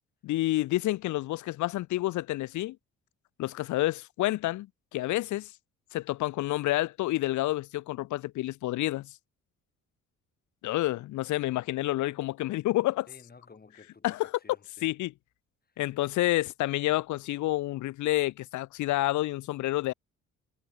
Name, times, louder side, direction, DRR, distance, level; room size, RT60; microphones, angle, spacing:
voice 1, 0.2-2.8 3.4-4.7 4.9-5.5 5.9-9.1 10.6-13.1 14.0-14.3 14.8-15.1 15.8-19.9, left 17 dB, 75° left, 0.6 m, -29 dB
voice 2, 13.1-14.9 15.6-15.8, left 4 dB, 30° left, 7.3 m, -54 dB
cardioid pair, 90°, 30 cm